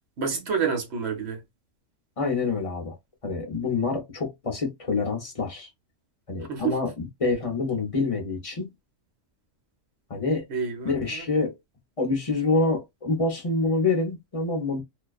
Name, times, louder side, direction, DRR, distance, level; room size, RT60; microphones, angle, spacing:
voice 1, 0.2-1.4 6.5-6.7 10.5-11.3, right 6 dB, 60° right, 1.1 m, -28 dB
voice 2, 2.2-3.0 3.2-5.7 6.3-8.7 10.1-10.4 10.8-11.5 12.0-14.8, left 3 dB, 35° left, 0.6 m, -26 dB
2.5 x 2.2 x 2.3 m
omnidirectional pair, 1.3 m